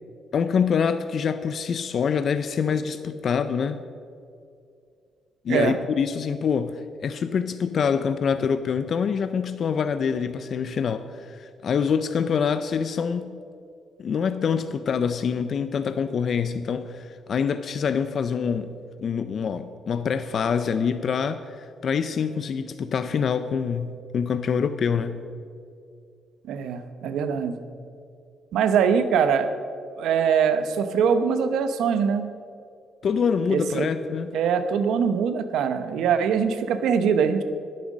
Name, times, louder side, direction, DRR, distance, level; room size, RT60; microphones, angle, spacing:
voice 1, 0.3-3.8 5.4-13.3 14.0-18.7 19.0-25.2 33.0-34.3, left 6 dB, 55° left, 11 dB, 0.5 m, -25 dB
voice 2, 26.5-27.5 28.5-29.5 30.0-32.3 33.5-33.9 34.3-37.4, right 7 dB, 80° right, 10 dB, 0.8 m, -22 dB
10.0 x 9.5 x 6.3 m, 2.4 s
cardioid pair, 90°, 0 cm